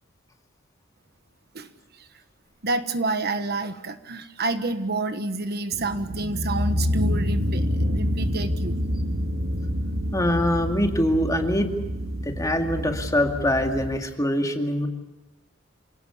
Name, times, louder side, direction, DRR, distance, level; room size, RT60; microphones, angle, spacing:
voice 1, 2.6-8.8, right 2 dB, 55° right, 9 dB, 1.4 m, -29 dB
sound 1, 5.7-13.9, equal, 90° right, 1.7 m, -27 dB
voice 2, 10.1-11.7 12.2-14.9, left 1 dB, 15° left, 4 dB, 2.3 m, -23 dB
28.0 x 18.0 x 7.2 m, 1.0 s
head